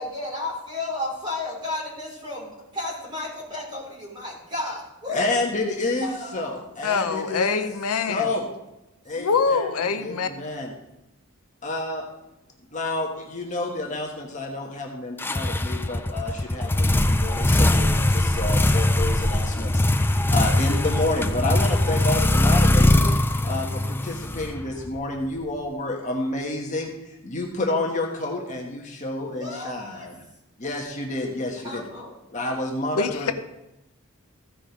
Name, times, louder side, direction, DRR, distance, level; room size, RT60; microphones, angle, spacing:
voice 1, 0.0-5.3 6.0-6.7 29.3-30.1 31.6-32.1, left 2 dB, 20° right, -4 dB, 3.4 m, -33 dB
voice 2, 5.1-7.6 8.1-8.5 9.0-10.7 11.6-12.0 12.7-23.1 23.4-30.2 30.6-31.8 32.3-33.3, left 2 dB, 35° left, 0 dB, 1.2 m, -29 dB
voice 3, 6.8-8.3 9.2-10.3 33.0-33.3, left 5 dB, 80° left, 10 dB, 0.7 m, -24 dB
sound 1, 15.2-25.0, left 1 dB, 10° left, 0.3 m, -21 dB
15.0 x 5.1 x 5.1 m, 0.92 s
head